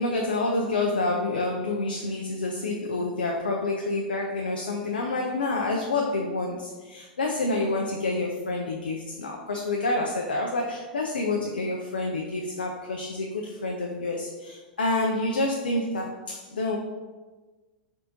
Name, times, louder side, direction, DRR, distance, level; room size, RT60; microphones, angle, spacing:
voice 1, 0.0-16.8, left 2 dB, 85° left, 0 dB, 0.4 m, -28 dB
4.2 x 3.4 x 2.6 m, 1.3 s
hypercardioid pair, 100°, 5 cm